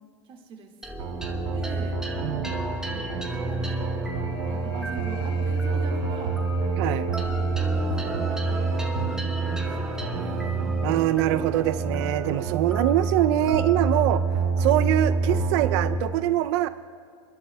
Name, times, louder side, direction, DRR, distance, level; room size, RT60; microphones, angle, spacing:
voice 1, 0.3-2.0 2.9-6.4 7.1-7.6 7.9-10.8, right 5 dB, 30° right, 2 dB, 1.8 m, -43 dB
sound 1, 0.8-15.5, equal, 5° right, 0.9 m, -36 dB
sound 2, 1.0-16.0, right 4 dB, 85° right, 2.2 m, -27 dB
voice 2, 2.2-2.6 6.8-7.1 10.8-14.2 14.6-16.7, right 13 dB, 60° right, 12 dB, 0.4 m, -23 dB
sound 3, 2.9-9.9, left 4 dB, 75° left, 4.0 m, -43 dB
29.0 x 11.5 x 2.2 m, 2.1 s
supercardioid pair, 135°, 16 cm